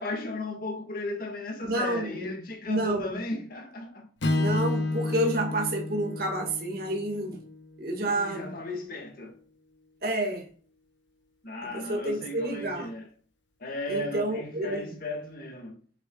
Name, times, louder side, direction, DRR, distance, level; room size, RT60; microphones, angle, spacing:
voice 1, 0.0-4.5 8.0-9.4 11.4-13.1 13.6-15.8, left 2 dB, 50° left, 1.8 m, -36 dB
voice 2, 1.6-2.3 2.7-3.2 4.3-7.4 7.8-8.6 10.0-10.5 11.7-12.9 13.9-14.9, right 1 dB, 55° right, 1.9 m, -29 dB
Strum, 4.2-8.5, left 2 dB, 70° left, 1.1 m, -31 dB
7.6 x 6.9 x 2.4 m
head